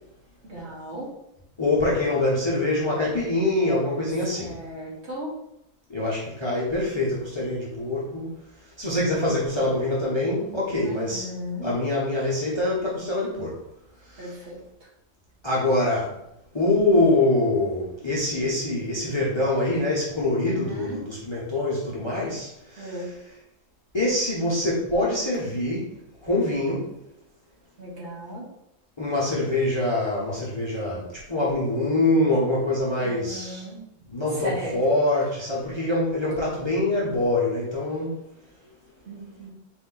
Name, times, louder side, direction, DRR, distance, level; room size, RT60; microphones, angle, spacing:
voice 1, 0.4-1.1 4.3-5.3 10.8-11.7 14.2-14.6 20.4-21.0 22.8-23.1 27.8-28.4 33.0-33.8 34.3-34.8 39.0-39.5, equal, 55° right, -5 dB, 1.5 m, -36 dB
voice 2, 1.6-4.5 5.9-8.3 8.8-11.2 11.6-13.6 14.1-14.3 15.4-16.1 16.5-23.1 23.9-25.8 26.2-26.9 29.0-33.6 34.1-38.1, left 2 dB, 25° left, -6 dB, 0.7 m, -24 dB
4.2 x 2.6 x 3.8 m, 0.81 s
omnidirectional pair, 1.4 m